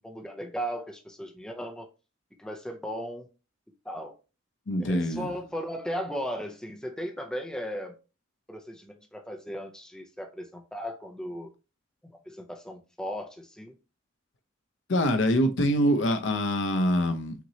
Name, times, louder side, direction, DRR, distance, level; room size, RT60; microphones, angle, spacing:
voice 1, 0.0-1.9 2.4-3.3 3.8-4.2 4.8-8.0 8.5-11.5 12.1-13.7, equal, 5° left, 0.6 m, -36 dB
voice 2, 4.7-5.3 14.9-17.3, equal, 60° left, 0.6 m, -24 dB
5.9 x 3.0 x 2.7 m
head